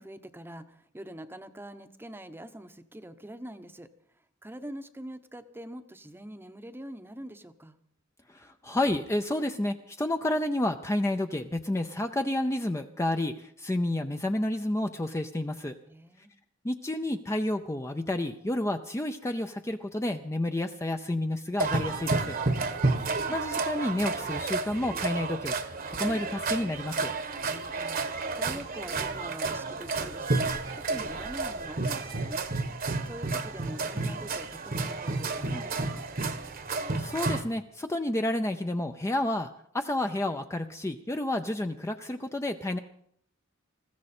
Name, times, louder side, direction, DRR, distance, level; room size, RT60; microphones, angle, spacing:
voice 1, 0.0-3.9 4.4-7.8 15.9-16.3 22.5-23.0 27.4-32.6 33.0-36.0, right 1 dB, 10° right, 9 dB, 0.8 m, -44 dB
voice 2, 8.3-15.7 16.6-22.4 23.2-25.5 25.9-27.1 37.0-42.8, left 1 dB, 15° left, 6 dB, 0.5 m, -30 dB
sound 1, 21.6-37.4, right 3 dB, 45° right, 1.1 m, -31 dB
20.5 x 15.0 x 4.3 m, 0.68 s
head